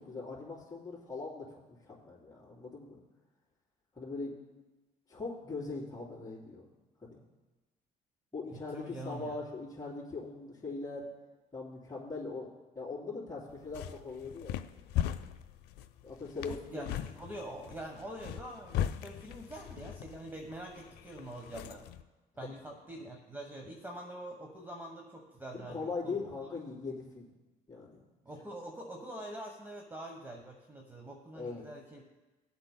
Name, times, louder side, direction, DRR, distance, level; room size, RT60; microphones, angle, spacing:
voice 1, 0.0-3.0 4.0-4.3 5.1-6.7 7.0-7.2 8.3-11.1 11.5-14.6 16.0-16.9 25.5-27.3 27.7-28.1 31.3-31.6, left 3 dB, 20° left, -7 dB, 3.8 m, -41 dB
voice 2, 8.5-9.3 16.4-21.9 22.4-26.3 28.2-32.0, right 1 dB, 10° right, 1 dB, 1.1 m, -45 dB
sound 1, 13.5-22.0, left 10 dB, 85° left, 0.5 m, -39 dB
22.0 x 7.9 x 2.2 m, 1.1 s
cardioid pair, 110°, 17 cm